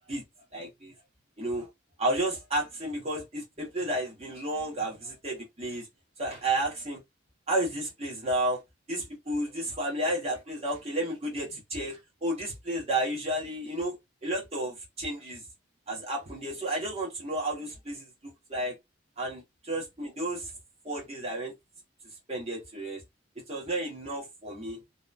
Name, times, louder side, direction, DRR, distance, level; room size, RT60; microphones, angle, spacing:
voice 1, 0.5-0.9 1.4-1.7 2.0-5.9 6.2-7.0 7.5-8.6 8.9-13.9 14.2-15.4 15.9-18.1 18.5-18.8 19.2-20.5 20.8-21.5 22.3-23.0 23.5-24.8, right 1 dB, 35° right, 1.0 m, -32 dB
2.9 x 2.1 x 2.3 m
head